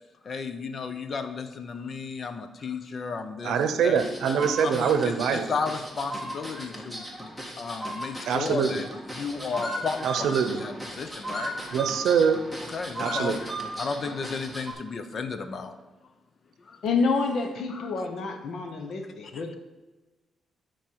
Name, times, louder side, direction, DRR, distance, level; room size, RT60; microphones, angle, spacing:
voice 1, 0.2-4.0 4.4-7.0 7.6-8.9 9.1-11.5 12.7-13.4 13.8-15.7 16.7-16.8 17.8-17.9, left 5 dB, 45° left, 9 dB, 0.8 m, -33 dB
voice 2, 3.4-5.5 8.3-8.8 10.0-10.6 11.7-12.4 13.0-13.4, right 7 dB, 90° right, 9 dB, 0.7 m, -24 dB
sound 1, 4.0-14.7, right 1 dB, 5° left, 1.6 m, -36 dB
voice 3, 16.8-19.5, left 4 dB, 65° left, 5 dB, 1.1 m, -28 dB
12.0 x 4.6 x 4.7 m, 1.2 s
cardioid pair, 115°, 0 cm